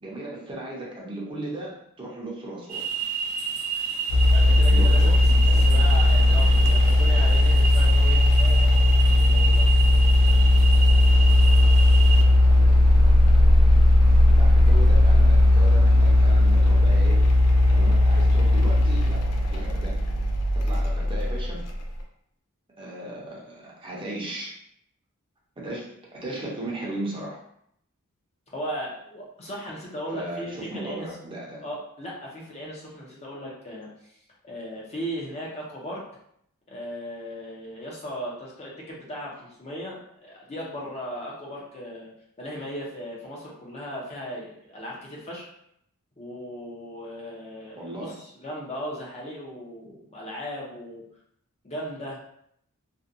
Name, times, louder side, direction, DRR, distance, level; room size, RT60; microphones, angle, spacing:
voice 1, 0.0-2.8 4.7-5.8 6.3-6.6 14.2-17.3 17.7-20.0 20.5-21.7 22.8-24.5 25.6-27.4 30.1-31.6 47.8-48.2, right 1 dB, 25° right, -4 dB, 0.6 m, -36 dB
sound 1, 2.7-12.2, right 5 dB, 90° right, 0.4 m, -30 dB
sound 2, 4.1-21.9, left 1 dB, 90° left, 0.4 m, -17 dB
voice 2, 4.3-10.4 28.5-31.1 31.6-34.1 34.4-36.0 36.7-42.1 42.4-45.5 46.2-51.0 51.6-52.2, equal, 30° left, -4 dB, 0.5 m, -37 dB
2.5 x 2.2 x 2.5 m, 0.71 s
head